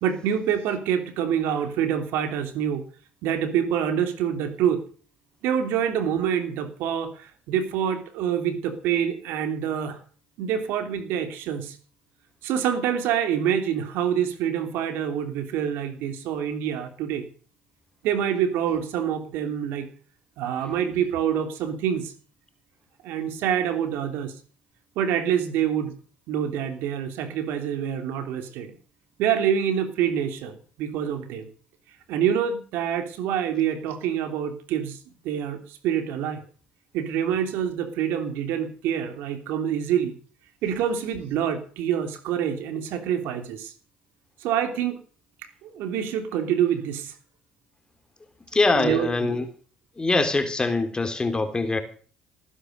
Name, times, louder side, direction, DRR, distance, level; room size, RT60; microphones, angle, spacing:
voice 1, 0.0-2.8 3.2-4.8 5.4-10.0 10.4-11.8 12.4-17.2 18.0-19.9 20.4-22.1 23.0-24.3 24.9-26.0 26.3-28.7 29.2-31.5 32.1-35.0 35.2-36.4 36.9-40.2 40.6-43.7 44.4-45.0 45.6-47.1 48.7-49.4, right 9 dB, 75° right, 3.2 m, -26 dB
voice 2, 48.5-49.4 50.0-51.8, left 3 dB, 20° left, 3.6 m, -23 dB
18.5 x 10.0 x 6.7 m
supercardioid pair, 70°, 4 cm